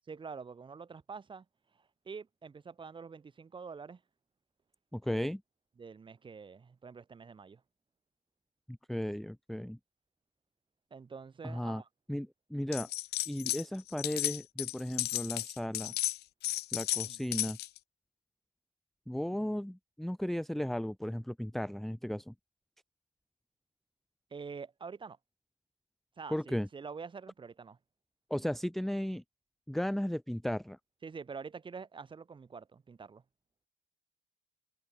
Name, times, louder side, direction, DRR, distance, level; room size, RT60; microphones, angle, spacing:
voice 1, 0.1-1.5 1.7-4.0 5.0-5.3 5.8-7.6 10.9-11.9 17.0-17.2 19.4-19.6 24.3-25.2 26.2-27.8 31.0-33.2, right 5 dB, 30° right, 3.9 m, -46 dB
voice 2, 4.9-5.4 8.7-9.8 11.4-11.8 12.1-12.9 13.3-15.9 16.7-17.6 19.1-22.3 26.3-26.7 28.3-29.2 29.7-30.8, equal, ahead, 0.8 m, -35 dB
sound 1, 12.7-13.6 13.9-17.8, left 16 dB, 75° left, 1.7 m, -34 dB
cardioid pair, 110°, 17 cm